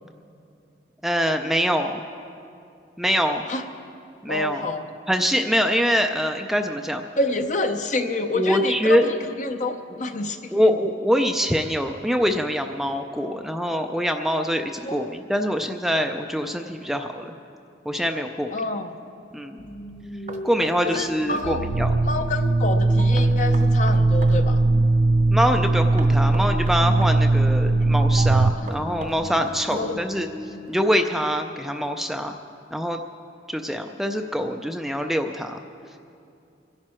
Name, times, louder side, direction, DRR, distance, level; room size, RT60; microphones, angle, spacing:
voice 1, 1.0-2.0 3.0-3.5 4.2-4.6 5.1-7.0 8.3-9.0 10.5-17.3 17.9-18.5 19.3-19.6 20.4-21.9 25.3-30.3 30.7-32.4 32.7-33.0 33.5-35.6, equal, ahead, 5 dB, 0.4 m, -24 dB
voice 2, 4.3-4.8 7.2-10.7 14.8-15.1 18.5-19.0 20.8-21.6 22.0-24.6 28.6-28.7 29.7-30.3, left 2 dB, 45° left, 6 dB, 0.7 m, -28 dB
sound 1, 19.6-31.7, left 1 dB, 25° left, 1.1 m, -38 dB
Knock, 20.3-21.5 23.2-24.4 26.0-27.2 28.7-30.1, right 2 dB, 40° right, 0.9 m, -38 dB
sound 2, 21.4-28.5, right 2 dB, 80° right, 0.5 m, -19 dB
24.0 x 10.5 x 4.4 m, 2.5 s
head